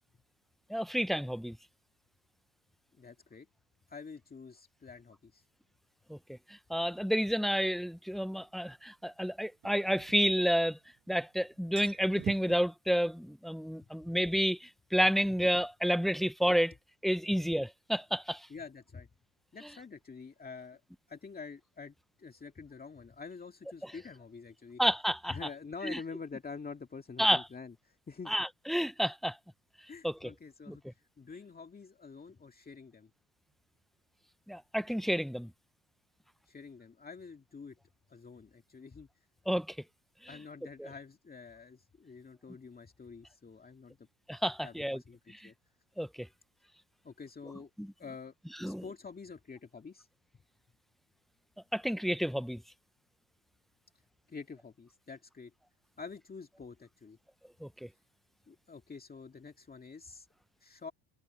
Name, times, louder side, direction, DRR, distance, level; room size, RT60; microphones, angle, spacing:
voice 1, 0.7-1.6 6.1-10.8 11.1-16.7 17.0-18.5 24.8-25.4 25.8-26.0 27.2-27.4 28.3-29.4 30.0-30.3 30.7-30.9 34.5-35.5 39.5-39.8 40.8-40.9 44.3-45.0 45.3-45.5 46.0-46.3 47.8-47.9 48.6-48.8 51.7-52.6 57.6-57.9, equal, ahead, 0.5 m, -30 dB
voice 2, 3.0-3.5 3.9-5.4 13.8-13.9 18.5-19.1 19.5-20.8 21.1-24.8 25.3-28.3 29.9-30.8 31.2-33.1 36.5-37.8 38.1-39.1 40.3-44.1 44.6-45.5 47.0-47.7 48.0-48.3 48.6-50.1 54.3-55.5 56.0-57.2 58.5-60.3 60.6-60.9, left 5 dB, 20° left, 2.2 m, -47 dB
sound 1, 7.2-7.3 9.6-10.9 11.2-11.3 11.6-12.6, right 13 dB, 60° right, 5.1 m, -44 dB
cardioid pair, 100°, 40 cm